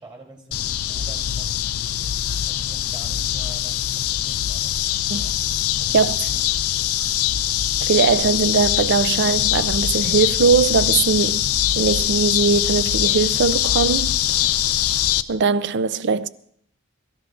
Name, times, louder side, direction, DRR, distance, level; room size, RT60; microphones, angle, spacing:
voice 1, 0.0-1.6 2.5-4.8 5.1-5.4 5.8-6.0 6.3-6.4 6.7-6.9, right 2 dB, 25° right, 2.9 m, -45 dB
sound 1, 0.5-15.2, left 12 dB, 80° left, 0.5 m, -22 dB
voice 2, 5.9-6.3 7.9-11.5 11.8-14.2 15.3-16.3, right 5 dB, 55° right, 0.5 m, -20 dB
23.0 x 13.0 x 2.5 m
head